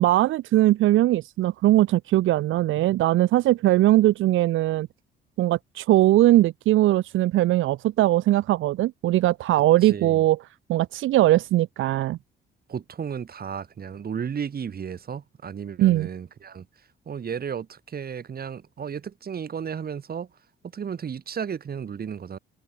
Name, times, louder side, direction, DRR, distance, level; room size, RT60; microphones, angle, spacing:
voice 1, 0.0-4.9 5.4-10.4 10.7-12.2 15.8-16.1, right 15 dB, 85° right, 1.1 m, -20 dB
voice 2, 9.8-10.2 12.7-16.6 17.1-20.3 20.7-22.4, right 7 dB, 50° right, 6.4 m, -33 dB
open air
cardioid pair, 90°, 20 cm